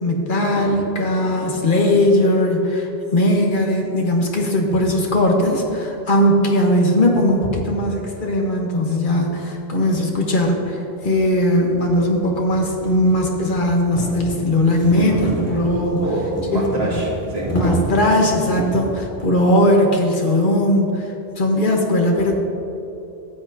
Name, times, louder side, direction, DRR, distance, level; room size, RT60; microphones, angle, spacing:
voice 1, 0.0-16.0 16.5-17.0 17.5-21.0 21.4-22.3, left 1 dB, 55° left, 1 dB, 1.3 m, -19 dB
sound 1, 10.1-10.2 11.0-19.0, equal, 15° left, 2.1 m, -30 dB
voice 2, 15.0-15.3 16.0-17.7, right 1 dB, 80° right, -5 dB, 2.3 m, -26 dB
14.0 x 8.0 x 2.7 m, 2.9 s
omnidirectional pair, 1.0 m